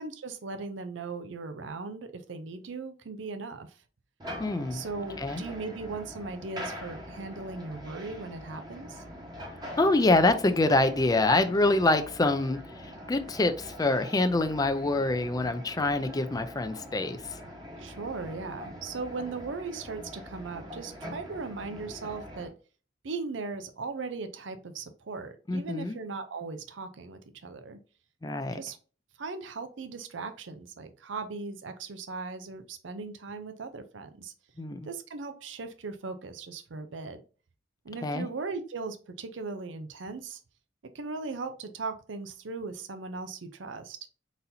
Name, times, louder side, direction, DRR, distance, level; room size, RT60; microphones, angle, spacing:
voice 1, 0.0-3.7 4.7-9.0 17.8-22.5 23.0-27.8 28.5-28.8 29.2-34.3 34.8-37.2 37.8-40.4 40.9-44.0, right 4 dB, 80° right, 8 dB, 0.6 m, -38 dB
sound 1, 4.2-22.5, equal, 25° right, 1.1 m, -43 dB
voice 2, 4.4-4.8 5.2-5.4 9.8-17.4 25.5-26.0 28.2-28.6 34.6-34.9 38.0-38.3, left 2 dB, 20° left, 8 dB, 0.4 m, -26 dB
4.1 x 4.0 x 2.7 m, 0.36 s
head